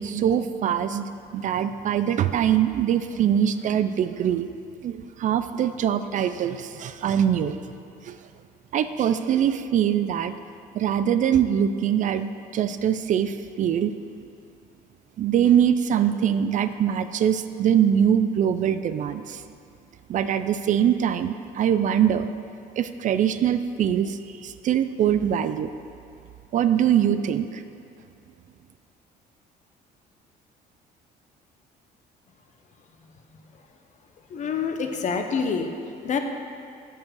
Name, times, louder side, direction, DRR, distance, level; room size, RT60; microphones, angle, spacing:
voice 1, 0.0-4.5 4.8-7.6 8.0-8.2 8.7-10.3 10.7-13.9 15.2-19.4 20.1-22.3 22.8-25.7 26.5-27.6, right 9 dB, 50° right, 11 dB, 0.4 m, -23 dB
voice 2, 34.3-35.7 36.0-36.2, left 5 dB, 45° left, 5 dB, 0.8 m, -26 dB
7.2 x 6.7 x 6.2 m, 2.5 s
cardioid pair, 110°, 17 cm